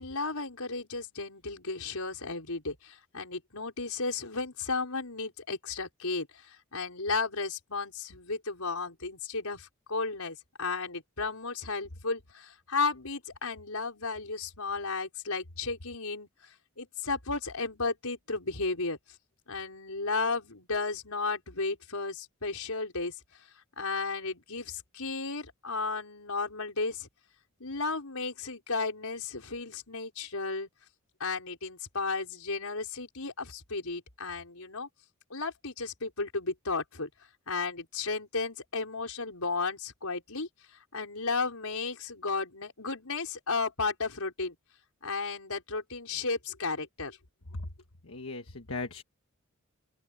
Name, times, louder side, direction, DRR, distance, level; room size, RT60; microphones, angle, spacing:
voice 1, 0.0-19.0 19.5-23.2 23.8-27.1 27.6-30.7 31.2-34.9 35.3-37.1 37.5-44.6 45.0-47.2, left 4 dB, 85° left, 4.8 m, -34 dB
voice 2, 48.0-49.0, left 2 dB, 65° left, 1.4 m, -37 dB
open air
head